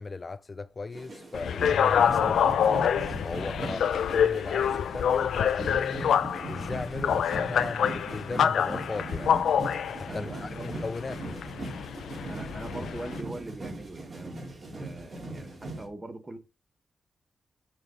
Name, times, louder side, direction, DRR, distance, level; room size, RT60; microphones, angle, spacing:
voice 1, 0.0-3.8 4.1-6.1 6.5-9.4 9.9-11.4, left 3 dB, 35° left, 0.4 m, -37 dB
sound 1, 0.9-15.9, right 2 dB, 45° right, 3.2 m, -39 dB
sound 2, 1.3-13.2, left 8 dB, 90° left, 0.5 m, -27 dB
voice 2, 3.5-3.9 10.1-10.8 12.3-16.4, right 2 dB, 20° right, 1.2 m, -42 dB
6.9 x 6.5 x 3.7 m
cardioid pair, 100°, 0 cm